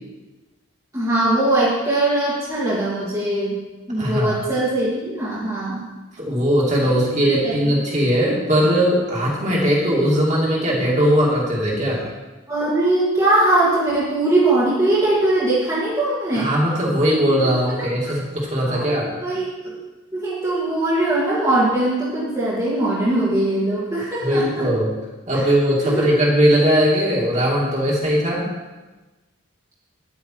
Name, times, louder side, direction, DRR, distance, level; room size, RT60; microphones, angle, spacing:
voice 1, 0.9-3.6 3.9-5.9 6.8-7.7 12.5-16.5 18.6-19.8 20.1-24.7 25.8-26.1, right 2 dB, 15° right, -10 dB, 2.1 m, -21 dB
voice 2, 4.0-4.4 6.2-12.1 16.3-19.1 24.2-24.9 25.3-28.5, equal, 35° right, -4 dB, 2.7 m, -19 dB
10.5 x 8.3 x 4.8 m, 1.2 s
head